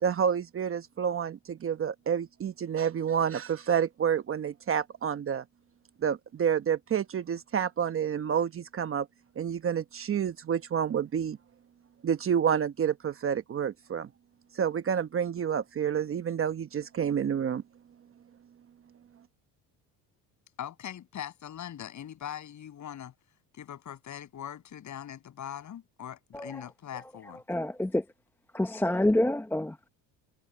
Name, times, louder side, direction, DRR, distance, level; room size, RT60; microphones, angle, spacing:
voice 1, 0.0-5.4 6.0-9.1 9.4-11.4 12.0-14.1 14.5-17.6, right 8 dB, 35° right, 1.0 m, -29 dB
voice 2, 20.6-23.1 23.5-27.4, left 10 dB, 45° left, 7.6 m, -41 dB
voice 3, 27.5-28.0 28.5-29.8, left 1 dB, 5° left, 0.8 m, -27 dB
open air
supercardioid pair, 100°, 39 cm